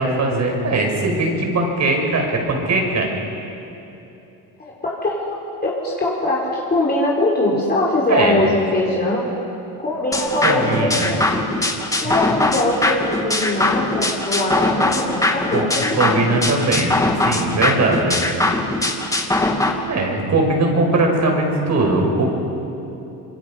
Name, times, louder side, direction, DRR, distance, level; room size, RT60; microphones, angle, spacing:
voice 1, 0.0-3.1 8.1-8.4 10.4-11.1 11.9-12.1 15.5-18.2 19.9-22.3, right 2 dB, 45° right, 2 dB, 5.9 m, -20 dB
voice 2, 4.6-9.2 9.8-11.2 12.0-16.2, left 2 dB, 25° left, -5 dB, 4.7 m, -22 dB
sound 1, 10.1-19.7, left 2 dB, 10° left, 2.3 m, -21 dB
26.0 x 24.0 x 5.9 m, 2.9 s
cardioid pair, 105°, 40 cm